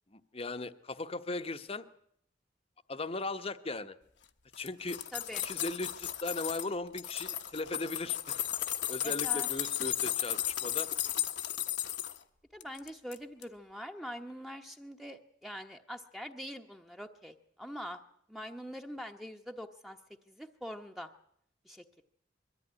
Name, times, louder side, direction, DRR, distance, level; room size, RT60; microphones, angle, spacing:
voice 1, 0.1-1.8 2.9-4.0 4.6-5.0 5.4-8.4 8.9-10.9, left 2 dB, 30° left, 10 dB, 0.9 m, -38 dB
sound 1, 4.5-6.7 7.0-12.2 12.6-13.2 13.4-13.5, left 12 dB, 70° left, 1.1 m, -34 dB
voice 2, 5.1-5.5 9.0-9.7 12.5-18.0 18.3-20.0 20.3-21.1 21.6-22.0, equal, ahead, 4 dB, 1.0 m, -44 dB
22.5 x 14.0 x 9.7 m, 0.71 s
head